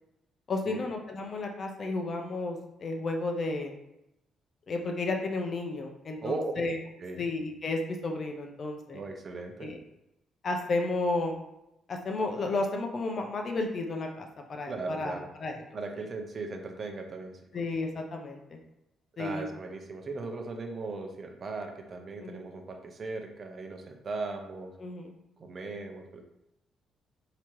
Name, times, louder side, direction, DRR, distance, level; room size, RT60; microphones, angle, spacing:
voice 1, 0.5-3.7 4.7-6.8 7.2-9.0 9.6-9.8 10.4-11.4 11.9-15.6 17.5-18.6 19.2-19.5 22.2-22.4 24.8-25.1, left 2 dB, 45° left, 3 dB, 0.7 m, -32 dB
voice 2, 6.2-6.5 7.0-7.2 8.9-9.7 14.7-15.3 15.7-17.4 19.2-24.7 25.4-26.3, right 3 dB, 45° right, 4 dB, 0.7 m, -38 dB
4.8 x 2.9 x 3.0 m, 0.88 s
cardioid pair, 90°, 0 cm